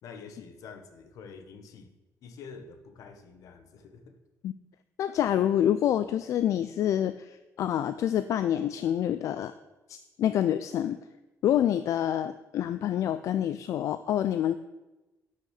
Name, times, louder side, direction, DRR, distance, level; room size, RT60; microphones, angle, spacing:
voice 1, 0.0-1.9 2.2-4.1, left 5 dB, 85° left, 7 dB, 1.4 m, -47 dB
voice 2, 5.0-9.5 9.9-11.0 11.4-14.6, left 10 dB, 65° left, 12 dB, 0.4 m, -27 dB
11.5 x 6.3 x 6.5 m, 1.1 s
cardioid pair, 165°, 6 cm